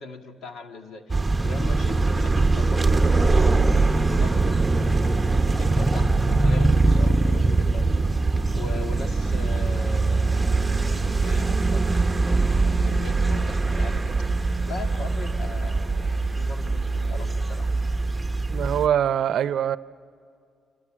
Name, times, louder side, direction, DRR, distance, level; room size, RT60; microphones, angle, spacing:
voice 1, 0.0-4.9 5.1-8.3 8.5-14.3 14.6-17.7, left 3 dB, 70° left, 2.0 m, -40 dB
sound 1, 1.1-18.9, right 3 dB, 15° right, 1.2 m, -22 dB
voice 2, 18.5-19.8, right 9 dB, 70° right, 0.7 m, -23 dB
29.5 x 26.5 x 7.6 m
cardioid pair, 90°, 0 cm